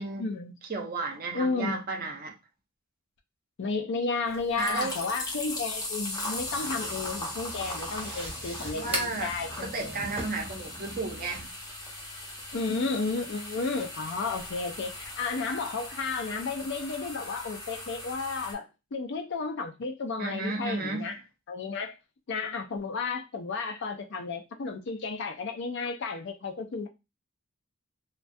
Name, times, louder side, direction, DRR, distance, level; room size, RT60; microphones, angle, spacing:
voice 1, 0.0-0.5 1.3-1.8 3.6-9.8 12.5-21.2 21.5-22.0 22.3-26.9, left 4 dB, 55° left, 0.4 m, -32 dB
voice 2, 0.7-2.3 4.6-4.9 8.7-9.3 9.6-11.5 20.2-21.1, right 3 dB, 45° right, 0.6 m, -33 dB
sound 1, 4.3-18.5, left 2 dB, 20° left, 0.6 m, -39 dB
sound 2, 6.3-11.5, right 2 dB, 25° right, 0.9 m, -40 dB
2.3 x 2.2 x 2.5 m
head